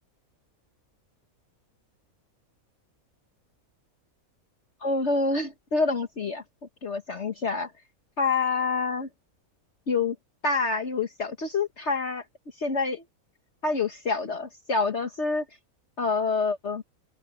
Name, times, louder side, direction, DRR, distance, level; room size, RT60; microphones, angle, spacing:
voice 1, 4.8-6.4 6.8-7.7 8.2-9.1 9.9-10.1 10.4-12.2 12.6-13.0 13.6-15.4 16.0-16.8, left 4 dB, 55° left, 1.7 m, -27 dB
open air
omnidirectional pair, 1.5 m